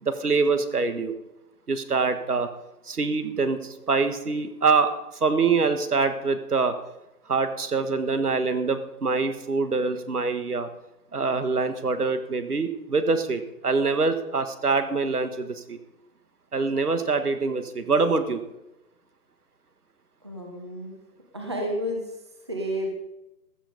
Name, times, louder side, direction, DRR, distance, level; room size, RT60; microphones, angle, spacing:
voice 1, 0.0-1.1 1.7-2.5 2.9-4.9 5.2-6.8 7.3-10.7 11.1-15.8 16.5-18.4, right 4 dB, 70° right, 9 dB, 1.8 m, -24 dB
voice 2, 20.2-21.0 21.3-22.9, equal, 15° right, 1 dB, 1.1 m, -31 dB
15.0 x 13.5 x 5.3 m, 0.91 s
hypercardioid pair, 175°, 47 cm